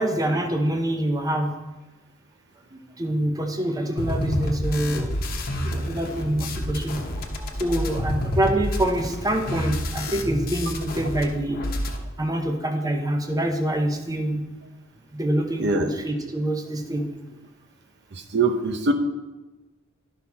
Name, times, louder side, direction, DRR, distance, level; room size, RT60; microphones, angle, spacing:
voice 1, 0.0-1.6 2.7-5.2 5.6-11.6 12.2-14.5 15.1-17.1, right 1 dB, 15° right, 4 dB, 0.7 m, -26 dB
sound 1, 4.0-11.2 11.5-12.0, left 1 dB, 45° left, 1.0 m, -29 dB
voice 2, 18.1-18.9, right 3 dB, 55° right, 6 dB, 0.8 m, -23 dB
11.0 x 5.9 x 4.2 m, 1.1 s
head